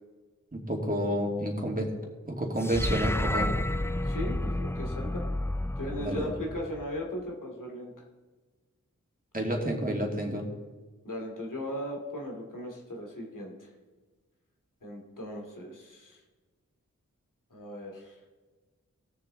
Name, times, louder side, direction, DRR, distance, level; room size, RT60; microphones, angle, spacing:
voice 1, 0.5-1.9 2.3-3.5 6.0-6.3 9.3-10.4, right 1 dB, 25° right, -1 dB, 2.7 m, -30 dB
sound 1, 2.6-7.0, left 1 dB, 10° left, 0.3 m, -31 dB
voice 2, 4.0-5.2 5.8-7.9 11.0-13.7 14.8-16.2 17.5-18.1, left 1 dB, 85° left, 0 dB, 2.6 m, -37 dB
18.0 x 6.9 x 3.9 m, 1.3 s
wide cardioid pair, 50°, 31 cm